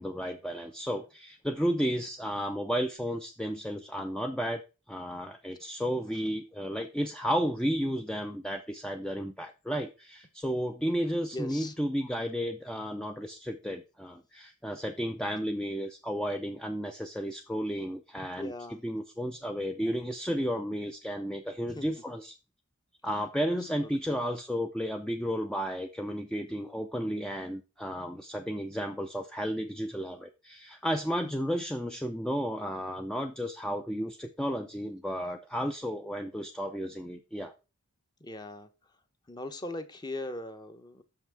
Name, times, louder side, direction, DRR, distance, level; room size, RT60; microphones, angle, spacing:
voice 1, 0.0-4.6 4.9-22.3 23.0-37.5, equal, 5° left, 4 dB, 0.4 m, -33 dB
voice 2, 11.3-11.7 18.4-18.8 21.7-21.8 23.8-24.2 38.2-38.7 39.3-41.0, left 1 dB, 20° left, 9 dB, 0.8 m, -39 dB
6.4 x 5.8 x 4.6 m, 0.30 s
head